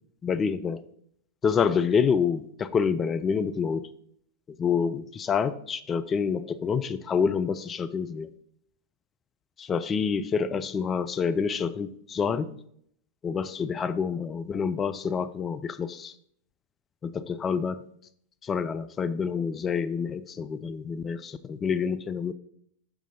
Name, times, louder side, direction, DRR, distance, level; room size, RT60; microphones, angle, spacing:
voice 1, 0.2-0.8 1.4-3.9 4.6-8.3 9.6-12.5 13.2-16.1 17.0-17.8 18.4-22.3, left 6 dB, 20° left, 12 dB, 0.4 m, -27 dB
6.8 x 6.0 x 4.1 m, 0.67 s
figure-of-eight pair, 90°, 0 cm